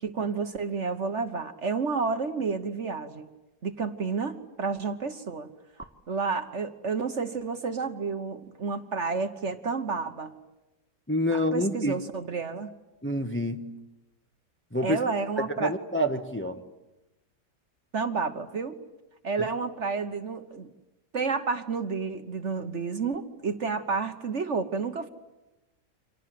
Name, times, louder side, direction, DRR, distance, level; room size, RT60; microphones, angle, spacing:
voice 1, 0.0-3.3 3.6-5.5 6.1-10.3 11.3-12.7 14.8-15.7 17.9-18.8 19.2-20.7 21.1-25.1, right 4 dB, 45° right, 1.4 m, -30 dB
voice 2, 11.1-11.9 13.0-13.7 14.7-15.0 15.6-16.6, equal, 10° left, 1.0 m, -27 dB
30.0 x 26.0 x 7.7 m
omnidirectional pair, 1.8 m